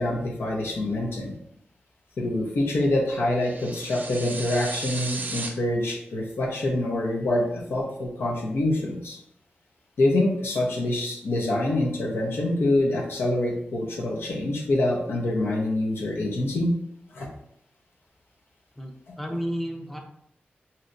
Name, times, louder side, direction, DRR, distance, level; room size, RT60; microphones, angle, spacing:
voice 1, 0.0-1.4 2.2-9.2 10.0-16.7 17.1-17.3 19.1-19.2, left 1 dB, 80° left, -1 dB, 0.8 m, -25 dB
sound 1, 3.4-5.5, right 3 dB, 45° right, 0.5 m, -35 dB
voice 2, 18.8-20.0, equal, 5° left, 2 dB, 0.5 m, -32 dB
3.1 x 2.8 x 2.6 m, 0.72 s
cardioid pair, 70°, 4 cm